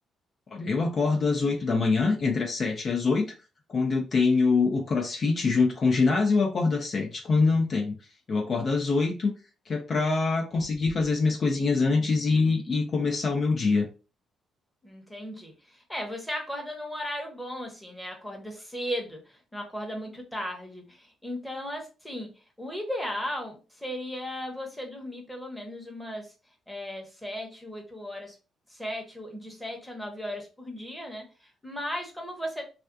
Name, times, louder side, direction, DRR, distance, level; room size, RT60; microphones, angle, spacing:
voice 1, 0.5-3.3 3.7-7.9 8.3-9.3 9.7-13.9, left 4 dB, 45° left, 2 dB, 0.4 m, -24 dB
voice 2, 14.8-22.3 22.6-26.3 26.7-28.4 28.7-32.6, equal, 5° left, 1 dB, 0.8 m, -36 dB
2.4 x 2.2 x 2.5 m, 0.32 s
cardioid pair, 90°, 0 cm